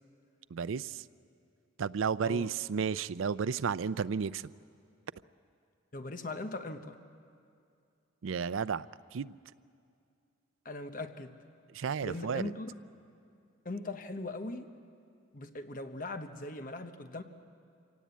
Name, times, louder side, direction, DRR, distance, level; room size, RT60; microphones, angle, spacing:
voice 1, 0.5-1.0 1.8-4.4 8.2-8.9 9.1-9.3 11.7-12.5, right 6 dB, 90° right, 16 dB, 0.5 m, -32 dB
voice 2, 5.9-7.0 10.6-11.3 12.0-12.7 13.6-14.7 15.3-17.2, left 2 dB, 45° left, 7 dB, 1.1 m, -40 dB
25.5 x 17.5 x 8.3 m, 2.4 s
head